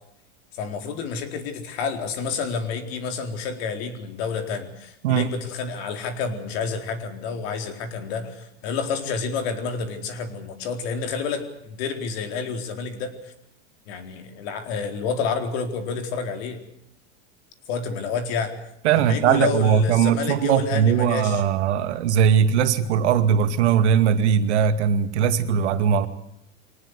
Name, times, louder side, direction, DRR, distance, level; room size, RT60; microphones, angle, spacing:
voice 1, 0.5-13.3 13.9-16.6 17.7-18.6 18.9-21.4, left 5 dB, 65° left, 6 dB, 4.2 m, -29 dB
voice 2, 18.8-26.1, right 8 dB, 85° right, 9 dB, 2.3 m, -20 dB
24.0 x 19.0 x 8.2 m, 0.78 s
supercardioid pair, 125°, 33 cm